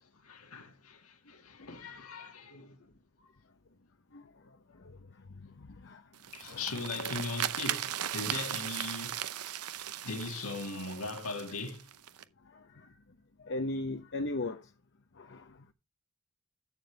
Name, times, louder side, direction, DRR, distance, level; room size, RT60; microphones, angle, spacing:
voice 1, 0.2-2.8 6.3-9.2 9.7-11.9, left 3 dB, 70° left, 2.0 m, -39 dB
voice 2, 4.1-6.0 6.5-6.9 12.4-12.9 13.4-14.7 15.1-15.6, left 2 dB, 55° left, 0.9 m, -39 dB
sound 1, 6.1-12.2, right 11 dB, 85° right, 0.7 m, -37 dB
12.0 x 6.9 x 3.3 m
head